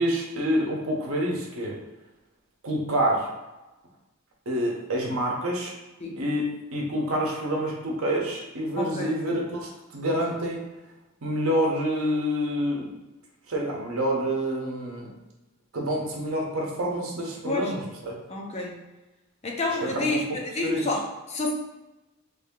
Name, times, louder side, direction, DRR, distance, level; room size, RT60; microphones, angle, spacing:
voice 1, 0.0-1.8 2.6-3.3 4.5-5.7 6.2-6.5 6.7-10.6 11.2-12.8 13.5-15.1 15.7-18.2 19.8-20.4 20.6-20.8, equal, 75° right, -1 dB, 0.9 m, -27 dB
voice 2, 8.7-9.1 17.4-17.7 18.3-18.9 19.4-21.5, left 2 dB, 30° left, 0 dB, 0.5 m, -29 dB
3.2 x 2.7 x 3.6 m, 1.1 s
head